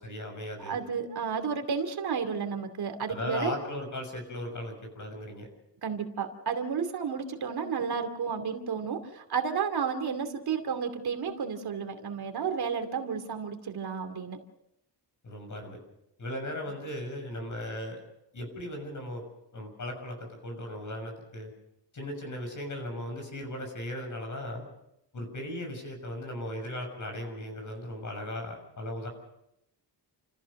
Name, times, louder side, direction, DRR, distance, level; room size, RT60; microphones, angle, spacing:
voice 1, 0.0-0.8 3.1-5.5 15.2-15.8 16.2-18.0 18.3-19.2 19.5-21.5 21.9-24.6 25.1-29.1, left 1 dB, 45° left, 4 dB, 6.5 m, -37 dB
voice 2, 0.6-3.6 5.8-14.4, right 6 dB, 65° right, 6 dB, 2.6 m, -32 dB
29.0 x 15.0 x 6.5 m, 0.82 s
wide cardioid pair, 150°, 41 cm